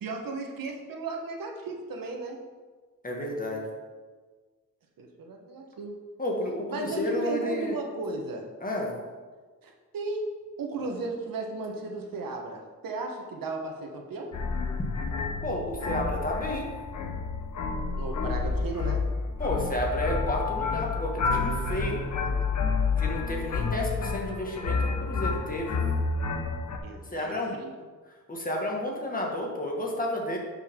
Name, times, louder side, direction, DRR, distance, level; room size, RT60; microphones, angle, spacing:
voice 1, 0.0-2.4 5.0-5.9 6.7-8.5 9.6-10.3 10.6-14.3 18.0-19.0 26.8-27.7, right 3 dB, 85° right, 2 dB, 1.3 m, -35 dB
voice 2, 3.0-3.6 6.2-7.7 8.6-8.9 15.4-16.7 19.4-22.0 23.0-25.8 27.1-27.5 28.3-30.4, left 1 dB, 25° left, -1 dB, 1.8 m, -31 dB
sound 1, 14.3-26.8, left 4 dB, 60° left, 1.1 m, -29 dB
11.0 x 5.5 x 3.7 m, 1.4 s
wide cardioid pair, 110°, 33 cm